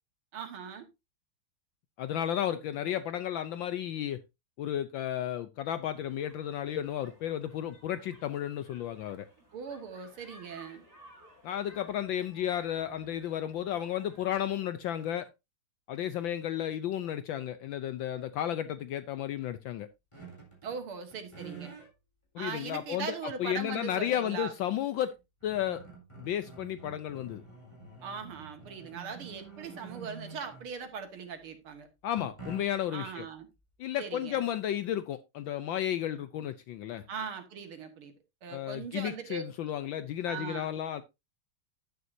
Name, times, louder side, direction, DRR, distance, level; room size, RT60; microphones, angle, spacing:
voice 1, 0.3-0.9 9.5-10.8 20.6-21.8 22.4-24.5 28.0-31.9 32.9-33.5 34.0-34.4 37.1-38.1 38.4-39.4 40.3-40.7, right 6 dB, 75° right, 2.6 m, -40 dB
voice 2, 2.0-4.2 4.6-9.3 11.4-15.3 15.9-19.9 22.3-25.2 25.4-25.8 26.2-27.4 32.0-33.3 33.8-37.0 38.5-41.0, left 11 dB, 70° left, 1.3 m, -33 dB
sound 1, 5.9-14.6, equal, 35° right, 6.5 m, -57 dB
sound 2, 20.1-20.8 21.1-21.9 22.6-22.7 24.7-24.8 25.2-30.9 32.2-33.0, right 4 dB, 15° left, 4.1 m, -48 dB
11.0 x 9.4 x 2.7 m
omnidirectional pair, 2.3 m